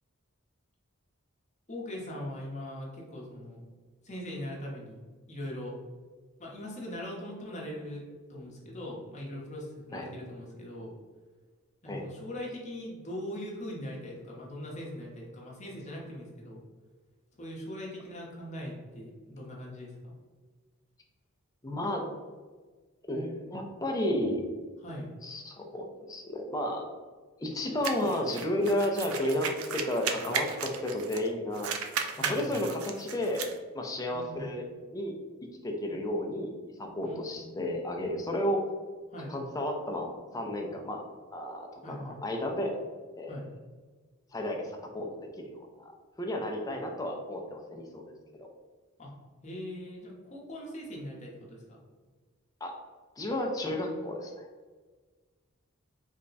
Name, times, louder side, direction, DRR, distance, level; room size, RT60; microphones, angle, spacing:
voice 1, 1.7-3.6 4.0-5.7 6.4-8.0 8.3-10.9 11.8-16.6 17.4-20.0 24.8-25.1 32.1-32.6 34.1-34.5 37.0-37.6 39.1-39.3 41.8-42.2 43.3-43.5 49.0-49.1 49.4-51.8, left 1 dB, 30° left, -3 dB, 0.9 m, -41 dB
voice 2, 21.6-22.1 23.1-24.5 25.2-26.9 27.4-31.7 32.3-33.4 33.7-34.6 34.9-35.1 35.6-36.5 36.8-38.7 39.3-41.0 41.3-42.8 43.2-43.3 44.3-45.9 46.2-48.0 48.4-48.5 52.6-52.7 53.2-54.3, left 1 dB, 15° left, 1 dB, 0.4 m, -32 dB
sound 1, 27.8-31.3 31.5-33.5, right 6 dB, 75° right, 0.4 m, -35 dB
3.4 x 2.2 x 3.9 m, 1.4 s
head